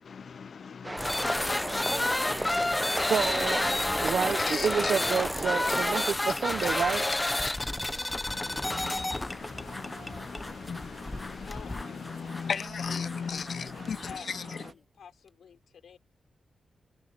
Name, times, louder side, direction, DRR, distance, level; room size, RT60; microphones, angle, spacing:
voice 1, 0.0-3.1 3.4-5.2 5.7-5.8 7.4-14.6, left 6 dB, 55° left, 0.6 m, -39 dB
sound 1, 0.8-6.1, right 1 dB, 10° right, 0.5 m, -34 dB
sound 2, 1.0-14.2, left 2 dB, 15° left, 0.9 m, -31 dB
sound 3, 1.0-14.7, right 5 dB, 55° right, 3.1 m, -50 dB
voice 2, 2.8-3.7 4.0-7.1, right 7 dB, 75° right, 0.8 m, -29 dB
voice 3, 11.3-13.5 13.7-16.0, left 7 dB, 80° left, 5.1 m, -50 dB
wide cardioid pair, 145°, 0 cm